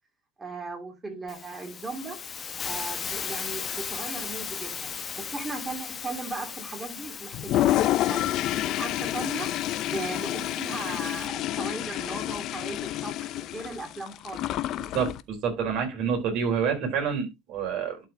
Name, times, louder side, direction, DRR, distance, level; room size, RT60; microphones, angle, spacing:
voice 1, 0.4-2.2 2.6-8.3 8.6-9.5 9.8-14.7, right 2 dB, 20° right, 3.0 m, -37 dB
Hiss, 1.3-11.3, left 6 dB, 30° left, 1.0 m, -38 dB
Toilet flush, 7.3-15.2, left 13 dB, 55° left, 0.6 m, -28 dB
voice 2, 14.9-18.0, right 6 dB, 55° right, 4.3 m, -28 dB
11.5 x 4.6 x 3.4 m
supercardioid pair, 95°, 0 cm